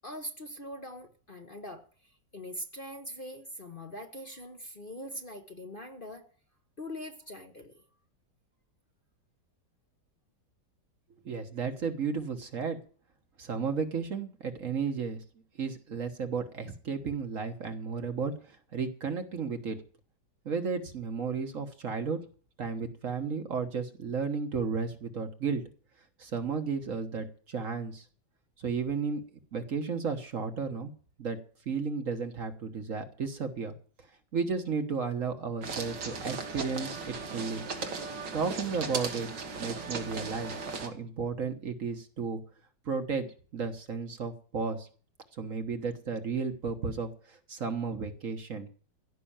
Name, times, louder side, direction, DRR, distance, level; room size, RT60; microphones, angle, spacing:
voice 1, 0.0-6.3 6.8-7.8, equal, 35° left, 5 dB, 1.1 m, -42 dB
voice 2, 11.2-12.8 13.4-15.2 15.6-19.8 20.4-22.2 22.6-25.6 26.2-28.0 28.6-29.2 29.5-30.9 31.2-31.4 31.7-33.7 34.3-37.6 38.3-39.3 39.6-42.4 42.8-43.3 43.5-44.9 45.3-48.7, right 5 dB, 50° right, 7 dB, 1.5 m, -33 dB
sound 1, 35.6-40.9, right 4 dB, 85° right, 2.4 m, -37 dB
16.0 x 6.0 x 8.9 m, 0.42 s
omnidirectional pair, 1.9 m